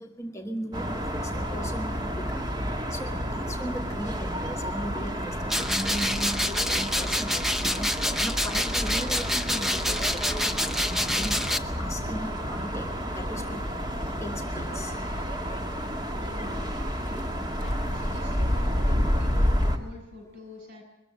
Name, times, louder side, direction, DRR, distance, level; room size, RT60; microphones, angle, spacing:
voice 1, 0.0-2.0 2.3-2.5 2.9-10.5 11.1-13.7 14.2-14.9, equal, 15° left, 2 dB, 1.3 m, -38 dB
sound 1, 0.7-19.8, equal, 20° right, 1.7 m, -30 dB
sound 2, 5.5-11.6, left 1 dB, ahead, 0.7 m, -27 dB
voice 2, 16.2-17.3 17.6-20.8, left 2 dB, 55° right, 1 dB, 7.6 m, -46 dB
22.0 x 14.0 x 9.4 m, 0.96 s
head